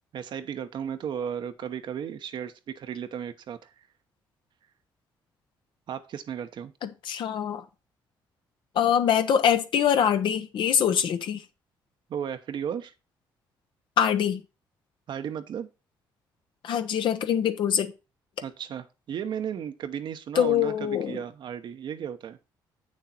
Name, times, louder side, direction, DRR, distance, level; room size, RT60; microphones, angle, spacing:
voice 1, 0.1-3.7 5.9-6.7 12.1-12.9 15.1-15.7 18.4-22.4, right 8 dB, 65° right, 0.9 m, -34 dB
voice 2, 6.8-7.6 8.7-11.4 14.0-14.4 16.6-17.9 20.3-21.2, left 9 dB, 70° left, 1.1 m, -24 dB
8.1 x 6.5 x 4.3 m
cardioid pair, 80°, 8 cm